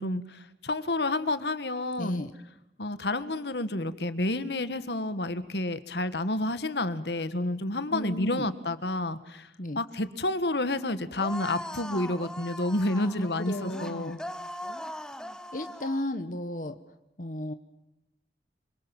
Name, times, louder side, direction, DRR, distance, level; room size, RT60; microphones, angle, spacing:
voice 1, 0.0-2.2 2.8-9.5 9.8-14.2, left 2 dB, 75° left, 12 dB, 1.8 m, -30 dB
voice 2, 2.0-2.3 7.9-8.5 9.6-9.8 13.0-14.1 15.5-16.8 17.2-17.5, left 1 dB, 50° left, 8 dB, 1.3 m, -34 dB
sound 1, 11.2-16.1, left 1 dB, 5° left, 0.9 m, -40 dB
26.5 x 25.5 x 7.3 m, 0.91 s
head